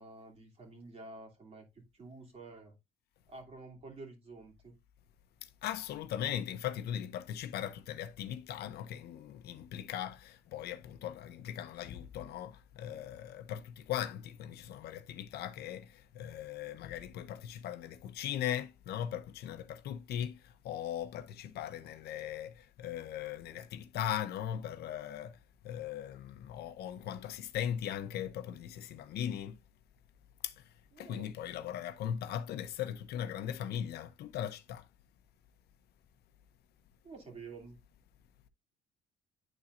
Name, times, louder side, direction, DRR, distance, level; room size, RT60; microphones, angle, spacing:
voice 1, 0.0-2.8 3.3-4.7 30.9-31.3 37.0-37.8, right 3 dB, 35° right, 2.7 m, -50 dB
voice 2, 5.6-25.4 25.6-29.6 30.4-30.5 31.0-34.9, left 10 dB, 70° left, 0.8 m, -39 dB
10.0 x 4.3 x 2.5 m
cardioid pair, 110°, 17 cm